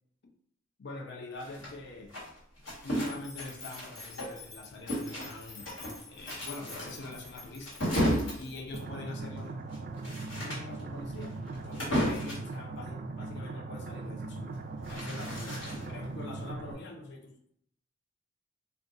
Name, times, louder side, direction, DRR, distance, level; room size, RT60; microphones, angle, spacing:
voice 1, 0.8-2.2 2.8-5.7 6.1-7.9 8.4-9.5 10.4-11.4 11.6-14.6 14.9-17.6, left 2 dB, 60° left, 2 dB, 0.6 m, -44 dB
sound 1, 1.4-4.5 4.9-12.5 14.4-16.0, equal, 75° left, 1.5 m, -34 dB
sound 2, 3.0-8.8, left 5 dB, 20° left, 0.6 m, -48 dB
sound 3, 8.7-16.7, right 3 dB, 45° right, 0.3 m, -39 dB
2.4 x 2.3 x 3.7 m, 0.69 s
head